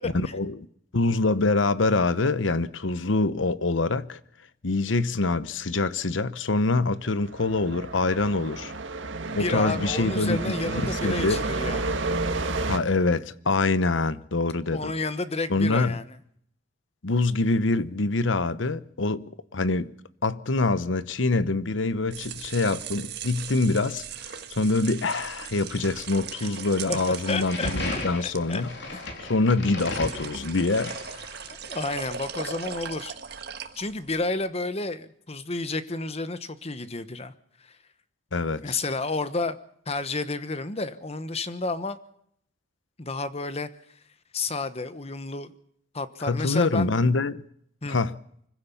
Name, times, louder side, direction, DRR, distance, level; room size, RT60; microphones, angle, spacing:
voice 1, 0.1-0.7 0.9-4.2 4.6-8.7 9.4-10.5 10.8-11.4 12.7-14.9 15.5-15.9 17.0-19.9 20.2-28.7 29.3-30.9 38.3-38.8 46.3-47.4 47.9-48.2, left 3 dB, 85° left, 1.0 m, -25 dB
sound 1, 7.2-12.8, right 3 dB, 80° right, 1.9 m, -30 dB
voice 2, 9.3-12.0 14.7-16.0 26.9-27.0 27.3-28.6 31.7-33.2 33.8-37.3 37.6-37.7 38.6-39.6 39.9-42.0 43.0-43.7 44.3-45.5 45.9-46.9 47.8-48.0, left 3 dB, 35° left, 1.1 m, -31 dB
sound 2, 21.9-34.2, right 7 dB, 60° right, 1.7 m, -39 dB
sound 3, 27.3-31.7, left 2 dB, 65° left, 3.9 m, -36 dB
25.0 x 15.5 x 7.1 m
head